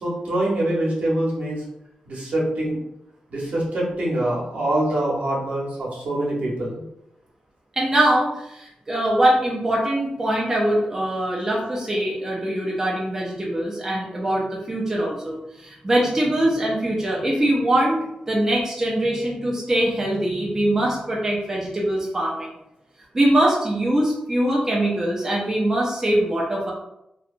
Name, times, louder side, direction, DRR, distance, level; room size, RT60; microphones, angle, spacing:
voice 1, 0.0-1.6 2.1-2.8 3.3-6.8, right 1 dB, 60° right, -4 dB, 0.8 m, -24 dB
voice 2, 7.8-22.5 23.1-26.7, right 1 dB, 15° right, -4 dB, 0.4 m, -22 dB
2.7 x 2.2 x 2.4 m, 0.85 s
wide cardioid pair, 170°, 3 cm